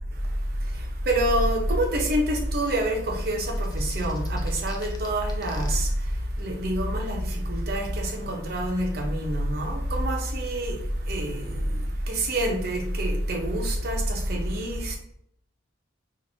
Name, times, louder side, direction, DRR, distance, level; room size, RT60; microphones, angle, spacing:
voice 1, 0.1-15.0, right 1 dB, 50° right, 0.7 m, -26 dB
sound 1, 3.4-5.8, left 4 dB, 20° left, 0.3 m, -46 dB
4.3 x 2.5 x 2.7 m
head